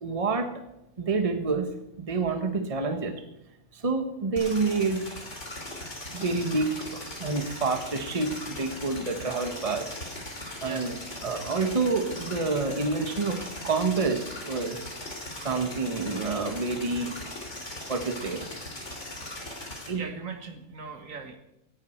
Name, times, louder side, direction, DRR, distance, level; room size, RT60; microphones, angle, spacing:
voice 1, 0.0-0.5 1.0-1.7 2.0-3.2 3.8-5.1 6.1-9.9 10.6-10.9 11.2-14.8 15.4-17.1 17.9-18.5 19.9-20.0, right 4 dB, 25° right, 7 dB, 1.3 m, -28 dB
sound 1, 4.4-19.9, left 1 dB, 50° left, 3.2 m, -39 dB
voice 2, 19.6-21.4, right 5 dB, 60° right, 7 dB, 1.7 m, -40 dB
17.0 x 10.5 x 4.5 m, 0.86 s
omnidirectional pair, 1.6 m